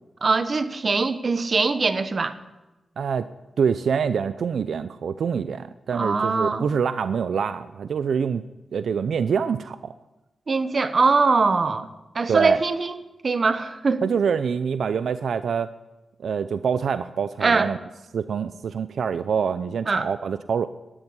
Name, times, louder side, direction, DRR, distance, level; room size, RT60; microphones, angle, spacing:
voice 1, 0.2-2.3 5.9-6.6 10.5-11.9 12.1-14.0 17.4-17.7 19.9-20.1, right 4 dB, 45° right, 10 dB, 1.1 m, -22 dB
voice 2, 3.0-3.3 3.6-8.4 8.7-9.9 12.3-12.6 14.0-15.7 16.2-17.8 18.1-20.7, right 6 dB, 80° right, 12 dB, 0.5 m, -25 dB
12.5 x 11.0 x 9.8 m, 1.0 s
wide cardioid pair, 130°, 0 cm